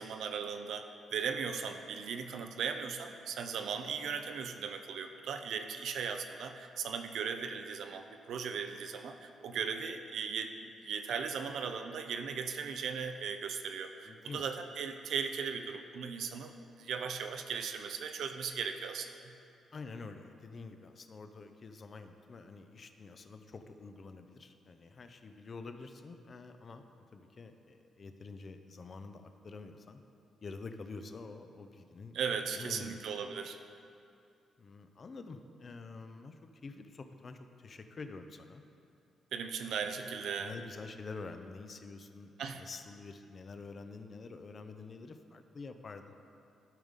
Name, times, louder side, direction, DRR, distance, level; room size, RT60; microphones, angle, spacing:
voice 1, 0.0-10.5 10.8-19.1 32.1-33.6 39.3-40.5 42.4-42.6, right 6 dB, 75° right, 6 dB, 0.5 m, -37 dB
voice 2, 14.0-14.4 19.7-30.0 30.4-33.0 34.6-38.6 40.4-46.1, left 4 dB, 45° left, 8 dB, 0.5 m, -48 dB
12.5 x 5.1 x 3.6 m, 2.5 s
cardioid pair, 80°, 0 cm